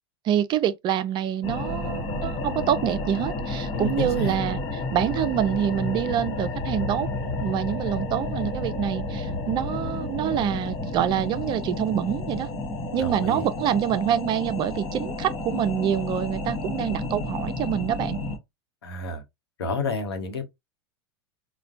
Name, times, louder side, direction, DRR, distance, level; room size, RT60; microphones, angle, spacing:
voice 1, 0.2-4.6 4.9-7.1 7.4-12.5 12.9-18.2, right 10 dB, 35° right, 0.4 m, -26 dB
sound 1, 1.4-18.4, left 2 dB, 40° left, 1.1 m, -31 dB
voice 2, 3.7-4.4 13.0-13.5 18.8-19.2 19.6-20.4, left 2 dB, 85° left, 1.0 m, -30 dB
4.2 x 2.2 x 2.6 m
hypercardioid pair, 100°, 13 cm